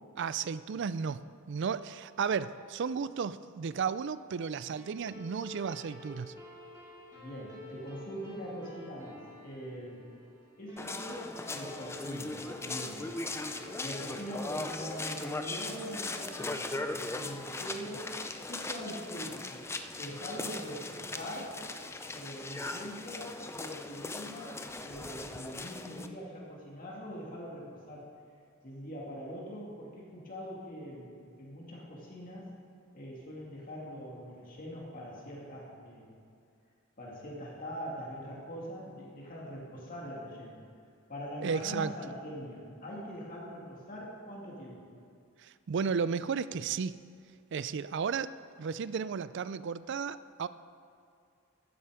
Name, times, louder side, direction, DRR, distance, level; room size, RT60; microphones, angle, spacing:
voice 1, 0.2-6.3 41.4-41.9 45.4-47.0 47.5-48.3 48.6-50.5, right 6 dB, 60° right, 15 dB, 0.4 m, -34 dB
sound 1, 4.7-17.4, left 2 dB, 15° right, 2.3 m, -50 dB
voice 2, 7.1-10.1 10.6-13.0 13.8-18.2 18.5-19.4 20.0-21.6 22.1-28.1 28.6-32.5 32.9-36.1 37.0-40.6 41.1-44.9, equal, 45° left, -4 dB, 2.3 m, -43 dB
chuze cizincu v prazske ulici, 10.8-26.1, left 2 dB, 15° left, 0.5 m, -39 dB
14.0 x 10.0 x 4.9 m, 2.3 s
head